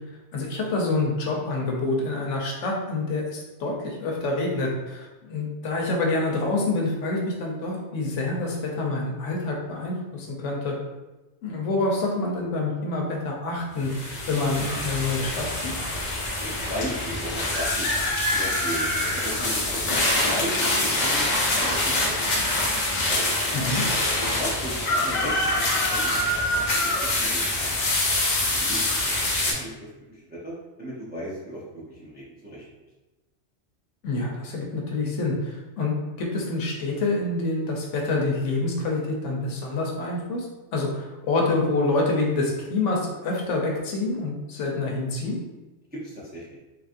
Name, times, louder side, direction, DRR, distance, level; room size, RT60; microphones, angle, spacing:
voice 1, 0.3-10.7 11.4-15.8 23.5-23.8 34.0-40.5 40.7-45.4, left 2 dB, 85° left, -1 dB, 1.0 m, -27 dB
sound 1, 13.8-29.5, left 1 dB, 50° left, 0.6 m, -25 dB
voice 2, 16.6-21.3 21.6-22.2 23.1-26.9 27.2-27.8 28.4-29.7 30.1-30.5 30.8-32.7 45.9-46.6, equal, 15° right, -7 dB, 0.3 m, -36 dB
3.2 x 2.4 x 2.5 m, 1.1 s
omnidirectional pair, 1.2 m